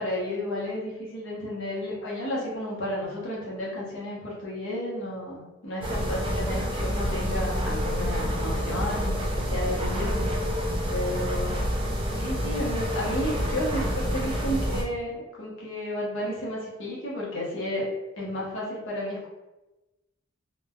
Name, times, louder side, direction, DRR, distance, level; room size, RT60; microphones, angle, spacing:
voice 1, 0.0-10.2 10.9-11.6 12.1-17.9 18.2-19.3, left 1 dB, 60° left, -5 dB, 0.8 m, -32 dB
sound 1, 5.8-14.8, equal, 25° right, 0.3 m, -28 dB
3.1 x 2.1 x 2.3 m, 1.0 s
head